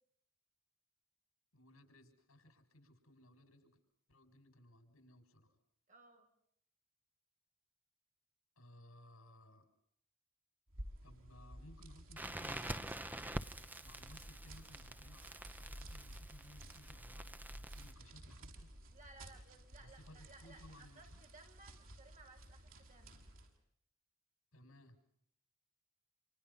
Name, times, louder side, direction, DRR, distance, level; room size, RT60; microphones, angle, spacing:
voice 1, 1.5-3.8 4.1-5.6 8.5-9.7 11.0-13.1 13.8-18.7 19.8-21.2 24.5-25.0, left 1 dB, 80° left, 8 dB, 6.6 m, -61 dB
voice 2, 5.9-6.3 18.9-23.2, right 2 dB, 35° right, 3 dB, 6.4 m, -61 dB
sound 1, 10.7-23.6, right 1 dB, 75° right, 6.8 m, -55 dB
Crackle, 12.2-17.9, right 1 dB, 10° right, 1.0 m, -46 dB
29.5 x 28.5 x 5.7 m, 0.69 s
head